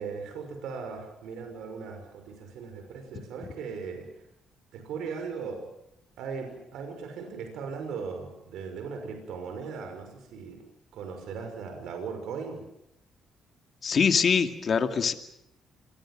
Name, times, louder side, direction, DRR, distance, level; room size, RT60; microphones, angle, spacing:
voice 1, 0.0-4.1 4.7-5.6 6.2-10.6 10.9-12.6, right 5 dB, 85° right, 5 dB, 6.0 m, -38 dB
voice 2, 13.8-15.1, left 6 dB, 50° left, 7 dB, 2.5 m, -23 dB
27.5 x 22.0 x 7.6 m, 0.81 s
cardioid pair, 90°, 0 cm